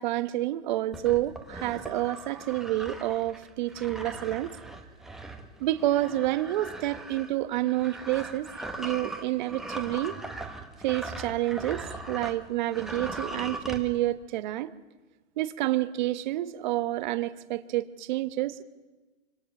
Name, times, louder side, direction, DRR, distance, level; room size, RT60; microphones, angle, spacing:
voice 1, 0.0-4.6 5.6-10.2 10.8-14.7 15.4-18.6, right 15 dB, 40° right, 13 dB, 1.2 m, -29 dB
sound 1, 0.9-12.4 12.7-13.8, right 2 dB, ahead, 1.4 m, -40 dB
25.5 x 25.0 x 6.1 m, 1.2 s
hypercardioid pair, 155°, 34 cm